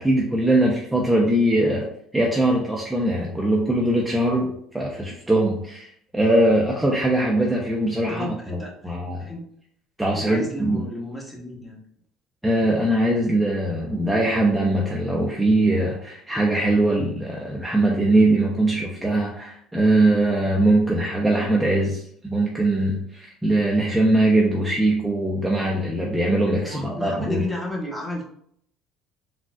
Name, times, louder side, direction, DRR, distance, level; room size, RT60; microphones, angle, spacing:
voice 1, 0.0-1.9 2.1-8.6 8.8-9.3 10.0-10.8 12.4-22.0 22.3-27.4, right 1 dB, 10° right, -3 dB, 0.7 m, -21 dB
voice 2, 8.1-8.9 9.2-9.4 10.1-11.8 26.6-28.2, left 1 dB, 10° left, -1 dB, 1.1 m, -32 dB
3.7 x 2.4 x 2.4 m, 0.66 s
hypercardioid pair, 75°, 0 cm